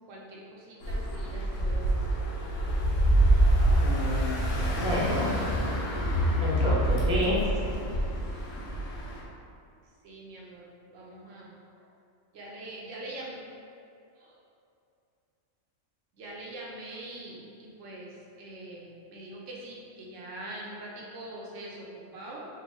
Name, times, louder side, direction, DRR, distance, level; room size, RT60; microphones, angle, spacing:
voice 1, 0.1-2.1 10.0-11.9 12.3-13.4 14.2-14.4 16.1-22.5, right 1 dB, 75° right, -3 dB, 1.0 m, -43 dB
sound 1, 0.8-9.2, right 1 dB, 85° left, 1.1 m, -26 dB
voice 2, 3.8-5.3 6.4-7.4, left 1 dB, 5° right, -7 dB, 0.4 m, -30 dB
4.3 x 2.2 x 3.7 m, 2.5 s
omnidirectional pair, 1.3 m